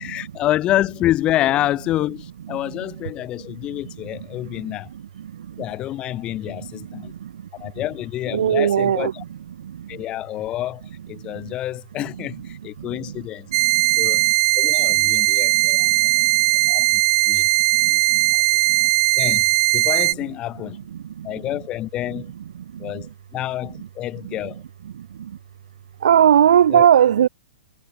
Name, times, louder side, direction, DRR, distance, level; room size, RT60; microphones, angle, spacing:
voice 1, 0.0-4.9 5.6-7.1 7.5-9.2 9.9-10.8 11.1-13.5 14.0-14.2 14.6-16.3 16.7-16.9 17.3-17.5 17.9-18.1 18.3-18.4 19.2-19.5 19.7-20.8 21.2-22.3 22.8-24.6 26.7-26.9, left 14 dB, 25° left, 7.5 m, -27 dB
voice 2, 8.3-9.1 22.2-22.3 26.0-27.3, right 9 dB, 70° right, 4.1 m, -15 dB
sound 1, 13.5-20.1, right 19 dB, 45° right, 0.6 m, -18 dB
hypercardioid pair, 150°, 4 cm